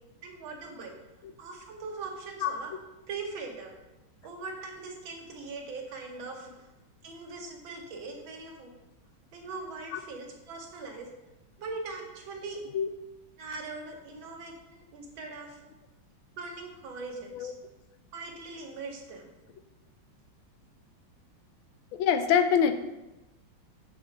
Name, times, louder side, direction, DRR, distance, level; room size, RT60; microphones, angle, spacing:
voice 1, 0.2-1.0 1.4-2.7 3.1-3.8 4.2-6.7 7.0-8.7 9.3-11.1 11.6-12.6 13.4-15.6 16.4-17.5 18.1-19.3, right 3 dB, 75° right, 2 dB, 1.8 m, -41 dB
voice 2, 2.4-2.8 6.5-6.6 9.9-10.0 12.7-12.9 14.1-14.2 17.3-17.5 22.0-22.7, left 8 dB, 80° left, 8 dB, 1.4 m, -26 dB
5.2 x 3.8 x 5.8 m, 1.0 s
omnidirectional pair, 2.2 m